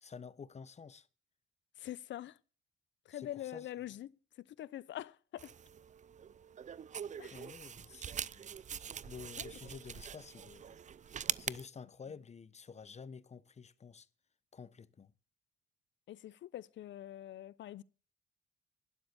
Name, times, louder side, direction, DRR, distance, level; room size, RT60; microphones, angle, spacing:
voice 1, 0.0-1.1 3.1-3.7 7.3-8.6 8.9-10.8 11.4-14.1 14.5-15.1, left 6 dB, 35° left, 0.9 m, -50 dB
voice 2, 1.8-2.4 3.1-4.1 4.4-5.5 7.2-7.4 9.4-9.5 16.1-17.8, left 13 dB, 65° left, 0.7 m, -44 dB
sound 1, 5.4-11.7, right 8 dB, 40° right, 0.5 m, -43 dB
12.0 x 9.5 x 6.9 m
cardioid pair, 90°, 20 cm